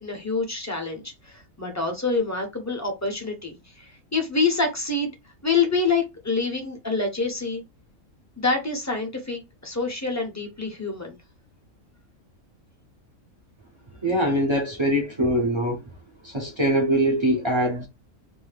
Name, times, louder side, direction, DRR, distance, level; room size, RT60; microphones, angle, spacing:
voice 1, 0.0-5.1 5.4-7.6 8.4-11.2, left 4 dB, 25° left, 0.4 m, -26 dB
voice 2, 14.0-15.8 16.2-17.9, right 1 dB, 45° right, 0.4 m, -23 dB
2.6 x 2.3 x 3.2 m
omnidirectional pair, 1.5 m